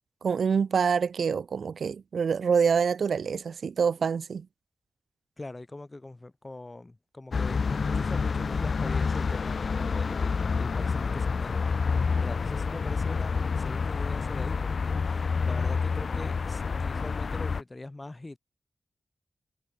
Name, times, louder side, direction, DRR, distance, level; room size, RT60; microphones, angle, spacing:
voice 1, 0.2-4.5, right 6 dB, 85° right, 0.6 m, -26 dB
voice 2, 5.4-18.4, left 2 dB, 25° left, 6.2 m, -42 dB
sound 1, 7.3-17.6, left 5 dB, 60° left, 0.9 m, -28 dB
wide cardioid pair, 115°, 0 cm